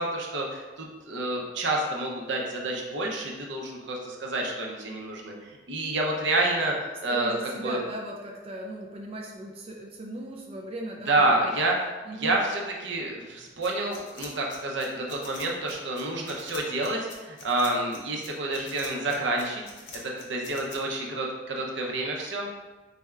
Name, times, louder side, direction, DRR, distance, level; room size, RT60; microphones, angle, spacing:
voice 1, 0.0-7.8 11.1-11.8 12.1-19.6 20.0-22.5, right 2 dB, 75° right, -1 dB, 0.7 m, -29 dB
voice 2, 7.1-11.6 12.0-12.4, right 1 dB, 35° right, -1 dB, 0.3 m, -37 dB
sound 1, 13.6-20.8, left 3 dB, 75° left, 0.7 m, -44 dB
4.2 x 3.3 x 2.4 m, 1.2 s
head